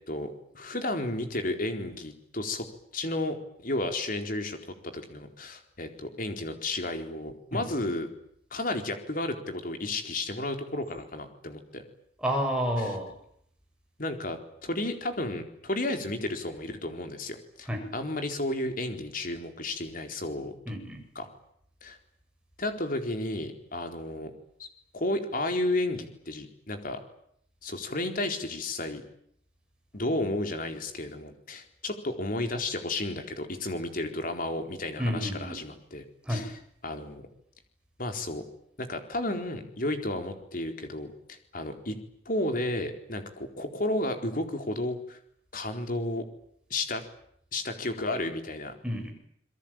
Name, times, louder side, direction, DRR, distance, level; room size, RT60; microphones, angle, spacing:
voice 1, 0.1-2.7 2.9-4.6 4.8-8.1 8.5-11.8 12.8-13.0 14.0-20.5 21.1-21.3 21.8-22.0 22.6-24.3 24.6-24.7 24.9-27.0 27.6-29.0 29.9-37.2 38.0-38.4 38.8-42.0 42.3-45.2 45.5-46.2 46.7-47.0 47.5-48.7, left 2 dB, 50° left, 6 dB, 4.3 m, -32 dB
voice 2, 12.2-13.1 17.7-17.8 20.7-21.0 35.0-35.6 36.2-36.5 48.8-49.1, equal, 5° right, 1 dB, 7.8 m, -30 dB
27.5 x 22.5 x 9.1 m, 0.70 s
head